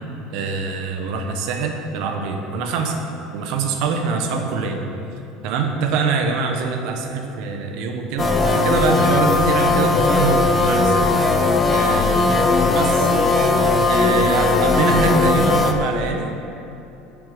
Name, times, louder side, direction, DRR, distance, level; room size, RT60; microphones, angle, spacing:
voice 1, 0.3-3.0 3.3-4.8 5.4-11.1 11.7-12.3 12.7-13.1 13.9-16.3, right 5 dB, 70° right, 4 dB, 1.0 m, -24 dB
sound 1, 8.2-15.7, left 3 dB, 20° left, 0.7 m, -18 dB
9.9 x 7.1 x 5.0 m, 2.8 s
cardioid pair, 135°, 0 cm